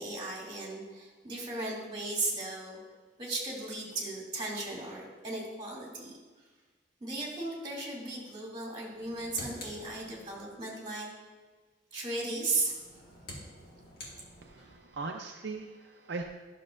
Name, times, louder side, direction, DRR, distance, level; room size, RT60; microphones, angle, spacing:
voice 1, 0.0-2.8 3.2-6.1 7.0-11.1 11.9-12.8, right 2 dB, 25° right, -3 dB, 2.5 m, -36 dB
sound 1, 8.9-10.6 12.5-14.9, left 1 dB, 55° left, 1.8 m, -48 dB
voice 2, 14.4-16.3, right 3 dB, 70° right, 2 dB, 0.5 m, -39 dB
12.0 x 6.6 x 2.5 m, 1.3 s
head